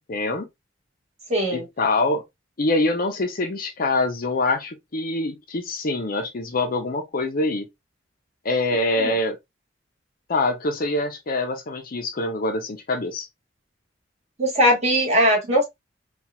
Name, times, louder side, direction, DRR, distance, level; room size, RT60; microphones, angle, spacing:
voice 1, 0.1-0.5 1.5-2.2 2.6-7.7 8.4-9.4 10.3-13.3, left 2 dB, 50° left, 0.7 m, -24 dB
voice 2, 1.3-1.7 9.0-9.1 14.4-15.6, equal, 35° right, 1.5 m, -19 dB
4.2 x 2.4 x 2.2 m
head